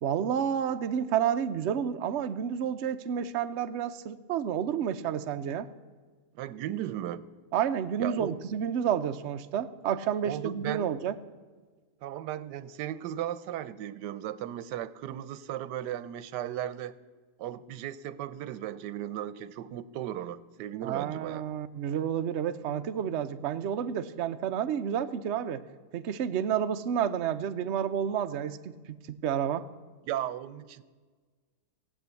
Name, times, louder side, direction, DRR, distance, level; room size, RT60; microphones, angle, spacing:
voice 1, 0.0-5.7 7.5-11.1 20.8-25.6 25.9-28.6 29.2-29.7, right 8 dB, 60° right, 9 dB, 0.8 m, -30 dB
voice 2, 6.3-7.2 8.0-8.3 10.2-10.9 12.0-16.9 17.4-21.4 30.1-30.8, right 12 dB, 85° right, 16 dB, 1.3 m, -36 dB
16.0 x 8.4 x 8.1 m, 1.5 s
omnidirectional pair, 1.8 m